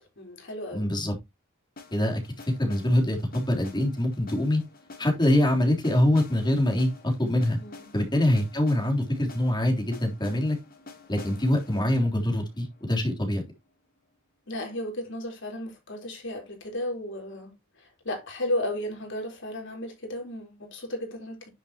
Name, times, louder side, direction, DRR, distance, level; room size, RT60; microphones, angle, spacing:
voice 1, 0.2-0.9 7.6-7.9 14.5-21.5, left 1 dB, 65° left, 3.9 m, -34 dB
voice 2, 0.7-1.1 1.9-4.6 5.0-7.6 7.9-10.6 11.1-13.4, left 1 dB, 20° left, 3.5 m, -24 dB
sound 1, 1.8-13.7, left 3 dB, 45° left, 2.5 m, -49 dB
10.0 x 6.8 x 3.0 m
head